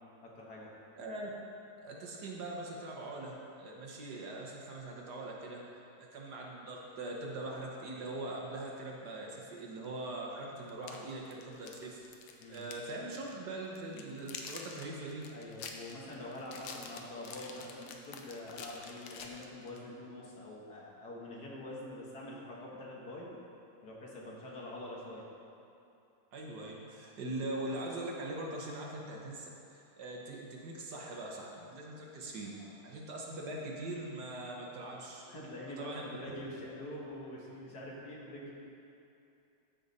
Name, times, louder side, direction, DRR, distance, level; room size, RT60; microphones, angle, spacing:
voice 1, 0.2-0.7 12.4-12.6 15.3-23.3 23.8-25.3 32.4-32.7 35.2-38.5, left 1 dB, 55° left, -4 dB, 1.8 m, -45 dB
voice 2, 1.0-1.3 1.8-5.6 6.0-15.3 26.3-32.5 32.8-35.3 35.8-36.1, right 2 dB, 65° right, -1 dB, 1.5 m, -42 dB
sound 1, 9.8-9.9 10.7-12.9 13.2-13.3 13.7-19.8, left 5 dB, 80° left, 1.4 m, -47 dB
13.5 x 5.0 x 4.1 m, 2.7 s
omnidirectional pair, 2.1 m